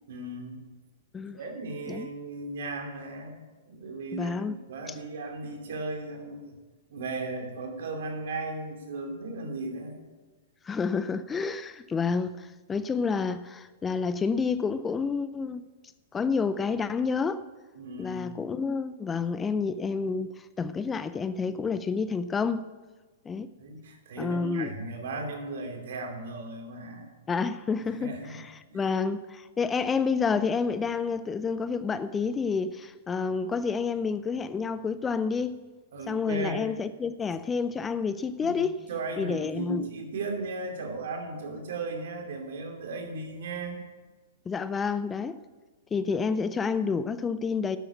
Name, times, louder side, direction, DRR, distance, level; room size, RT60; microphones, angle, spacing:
voice 1, 0.1-0.6 1.3-6.5 6.9-10.0 17.7-18.3 23.6-27.1 28.0-28.4 28.7-28.9 35.9-36.7 38.4-43.8, right 2 dB, 60° right, 2.8 m, -36 dB
voice 2, 4.1-4.6 4.9-5.0 10.6-15.7 16.1-17.4 18.0-22.7 23.3-23.5 24.2-24.7 27.3-35.6 36.1-38.8 39.2-39.8 44.5-45.4 45.9-47.8, left 5 dB, 15° left, 0.5 m, -29 dB
12.0 x 8.3 x 8.2 m
hypercardioid pair, 110°, 0 cm